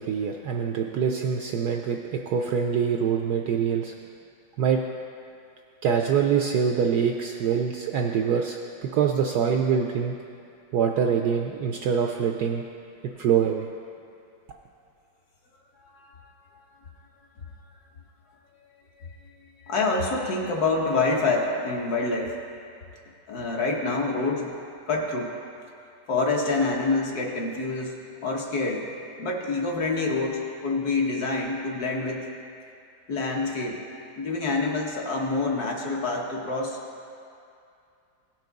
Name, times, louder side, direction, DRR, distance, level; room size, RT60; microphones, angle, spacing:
voice 1, 0.0-3.9 4.6-4.8 5.8-10.1 10.7-12.6 13.2-13.7, right 7 dB, 75° right, 2 dB, 0.9 m, -24 dB
voice 2, 15.8-16.3 19.0-19.3 19.6-22.3 23.3-24.5 24.9-25.3 26.1-27.9 28.2-28.9 29.2-32.2 33.1-33.8 34.2-36.8, left 3 dB, 55° left, -1 dB, 1.4 m, -27 dB
16.5 x 6.0 x 3.9 m, 2.6 s
omnidirectional pair, 2.1 m